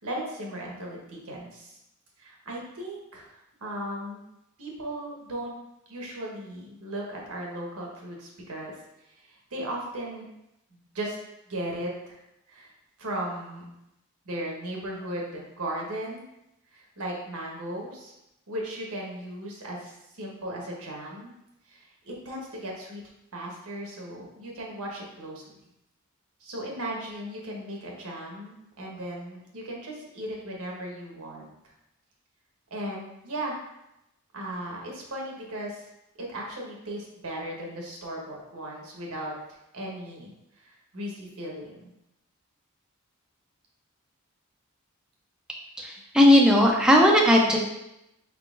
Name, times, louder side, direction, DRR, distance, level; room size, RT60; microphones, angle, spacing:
voice 1, 0.0-1.8 2.2-3.3 3.6-4.2 4.6-5.5 5.9-8.7 9.2-10.3 10.7-11.2 11.5-12.2 12.5-12.7 13.0-13.7 14.2-16.2 16.7-18.1 18.5-21.3 21.7-23.0 23.3-25.6 26.4-31.7 32.7-33.6 34.3-35.8 36.2-39.3 39.7-41.9, right 1 dB, 80° right, -2 dB, 1.1 m, -36 dB
voice 2, 45.8-47.6, left 1 dB, 5° right, -2 dB, 0.4 m, -17 dB
4.6 x 3.7 x 2.4 m, 0.87 s
head